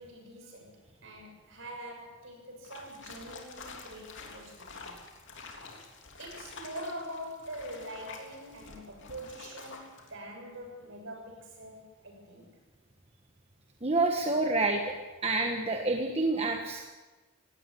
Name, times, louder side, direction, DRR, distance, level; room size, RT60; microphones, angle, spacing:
voice 1, 0.0-5.0 6.2-12.6, right 1 dB, 65° right, 1 dB, 7.3 m, -44 dB
sound 1, 2.6-10.1, left 4 dB, 60° left, 3.2 m, -48 dB
voice 2, 13.8-14.9 15.2-16.8, right 2 dB, 30° right, 3 dB, 1.5 m, -28 dB
18.5 x 17.0 x 10.0 m, 1.2 s
head